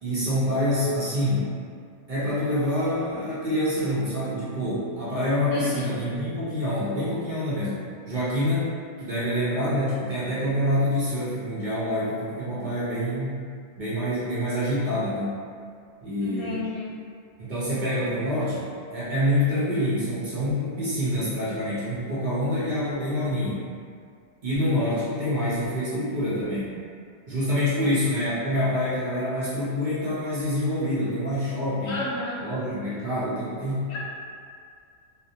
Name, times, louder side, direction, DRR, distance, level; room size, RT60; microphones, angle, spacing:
voice 1, 0.0-1.5 2.1-7.8 8.1-8.7 9.0-13.4 13.8-15.4 16.0-16.6 17.4-23.6 24.4-26.7 27.3-32.0 32.4-34.0, left 1 dB, 50° right, -11 dB, 0.7 m, -26 dB
voice 2, 5.5-5.9 16.2-16.9 31.9-32.4 33.9-34.0, left 3 dB, 70° left, -6 dB, 0.8 m, -32 dB
2.5 x 2.1 x 2.7 m, 2.2 s
omnidirectional pair, 1.2 m